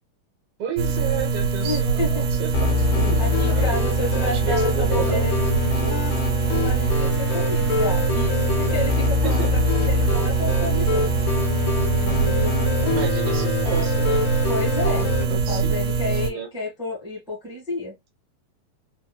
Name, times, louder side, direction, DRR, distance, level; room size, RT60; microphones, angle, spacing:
voice 1, 0.6-3.8 4.3-5.3 9.2-9.5 12.8-14.2 15.0-16.5, right 7 dB, 70° right, 1.2 m, -32 dB
sound 1, 0.8-16.3, right 5 dB, 90° right, 2.4 m, -23 dB
voice 2, 1.6-2.2 3.2-6.0 6.4-11.1 12.0-13.1 14.5-17.9, left 2 dB, 5° right, 0.5 m, -31 dB
sound 2, 2.5-15.2, left 3 dB, 75° left, 2.4 m, -24 dB
5.6 x 2.2 x 2.3 m
omnidirectional pair, 3.8 m